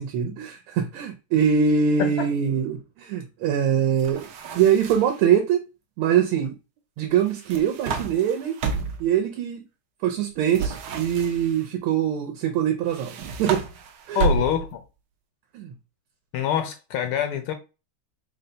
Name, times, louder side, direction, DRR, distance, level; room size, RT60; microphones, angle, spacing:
voice 1, 0.0-4.3 4.5-5.6 6.0-6.5 7.0-8.6 9.0-9.6 10.0-13.7 14.1-14.2 15.5-15.7, right 8 dB, 85° right, 1.6 m, -23 dB
sound 1, 4.0-5.3 7.2-9.1 10.5-11.7 12.9-14.8, right 4 dB, 65° right, 1.2 m, -30 dB
voice 2, 14.1-14.8 16.3-17.5, left 10 dB, 80° left, 1.4 m, -25 dB
4.2 x 2.1 x 3.9 m
omnidirectional pair, 2.3 m